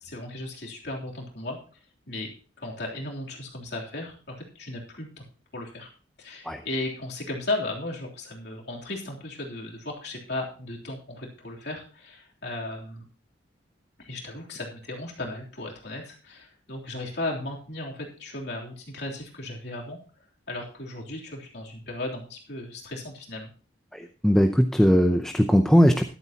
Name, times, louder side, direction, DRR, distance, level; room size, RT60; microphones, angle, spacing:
voice 1, 0.0-1.6 2.1-2.3 2.6-5.3 5.5-5.9 6.2-13.1 14.0-23.5, left 2 dB, 60° left, -1 dB, 3.3 m, -36 dB
voice 2, 23.9-26.0, equal, 5° left, 6 dB, 0.6 m, -19 dB
13.5 x 12.0 x 2.9 m, 0.38 s
head